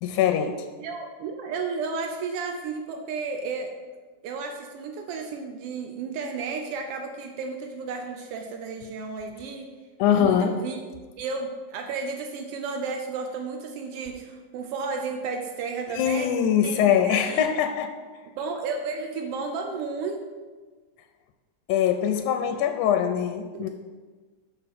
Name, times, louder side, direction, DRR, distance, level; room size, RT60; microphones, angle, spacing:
voice 1, 0.0-0.5 10.0-10.5 16.0-17.9 21.7-23.7, left 9 dB, 90° left, 7 dB, 2.0 m, -22 dB
voice 2, 0.8-3.7 4.2-9.7 10.1-10.9 11.2-16.3 16.6-17.5 18.4-20.2 23.5-23.7, right 4 dB, 90° right, 3 dB, 1.3 m, -33 dB
5.6 x 5.5 x 5.9 m, 1.4 s
omnidirectional pair, 3.4 m